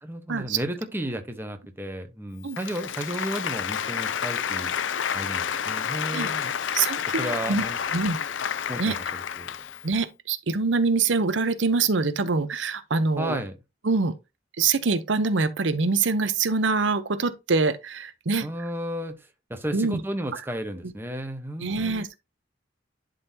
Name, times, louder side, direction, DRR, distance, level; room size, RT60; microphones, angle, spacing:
voice 1, 0.0-4.7 5.1-6.5 7.2-7.8 8.7-9.5 13.2-13.6 18.4-19.1 19.5-22.0, right 1 dB, 10° right, 1.0 m, -33 dB
Applause, 2.5-9.9, left 8 dB, 85° left, 0.5 m, -30 dB
voice 2, 6.7-7.6 7.9-8.2 8.8-9.0 9.8-13.4 13.8-14.1 14.6-18.5 19.7-20.0 20.3-20.4 21.6-22.2, right 4 dB, 80° right, 0.7 m, -24 dB
11.0 x 3.9 x 2.8 m
head